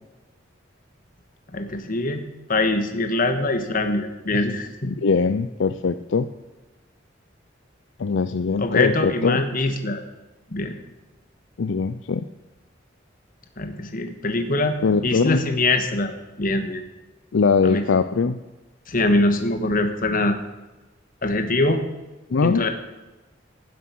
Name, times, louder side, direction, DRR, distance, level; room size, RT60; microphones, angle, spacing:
voice 1, 1.5-4.9 8.6-10.0 10.5-10.7 13.6-16.8 17.6-17.8 18.9-20.4 21.2-21.9 22.4-22.7, left 2 dB, 45° left, 7 dB, 1.4 m, -23 dB
voice 2, 4.8-6.3 8.0-9.4 11.6-12.3 14.8-15.4 17.3-18.4 22.3-22.6, left 5 dB, 75° left, 11 dB, 0.5 m, -21 dB
16.0 x 7.6 x 6.1 m, 1.1 s
head